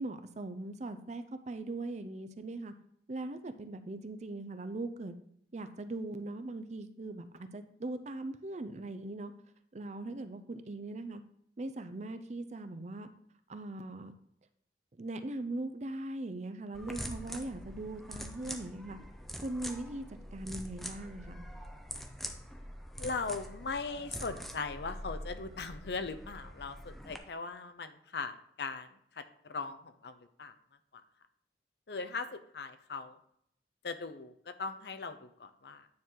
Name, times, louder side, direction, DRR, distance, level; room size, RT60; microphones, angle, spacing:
voice 1, 0.0-2.7 3.1-5.1 5.5-9.3 9.7-11.2 11.6-13.1 13.5-14.1 15.0-19.0 19.4-20.0 20.3-21.4, right 2 dB, 40° right, 10 dB, 0.5 m, -40 dB
sound 1, 16.7-27.2, equal, ahead, 0.6 m, -44 dB
voice 2, 23.0-28.9 29.2-30.5 30.9-31.0 31.9-33.2 33.8-35.9, left 4 dB, 65° left, 10 dB, 0.6 m, -39 dB
9.5 x 3.8 x 4.7 m, 0.70 s
head